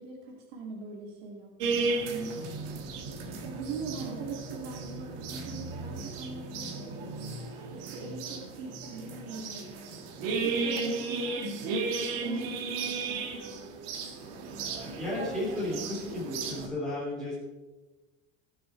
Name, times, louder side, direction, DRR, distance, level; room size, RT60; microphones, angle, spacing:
voice 1, 0.0-2.5 3.4-7.0 7.7-9.7 10.4-11.5 12.1-13.3, right 3 dB, 85° right, 0 dB, 2.3 m, -42 dB
sound 1, 1.6-16.7, right 4 dB, 65° right, 2.0 m, -35 dB
voice 2, 14.8-17.4, left 1 dB, ahead, -9 dB, 3.2 m, -34 dB
18.5 x 6.9 x 4.5 m, 1.2 s
cardioid pair, 170°, 30 cm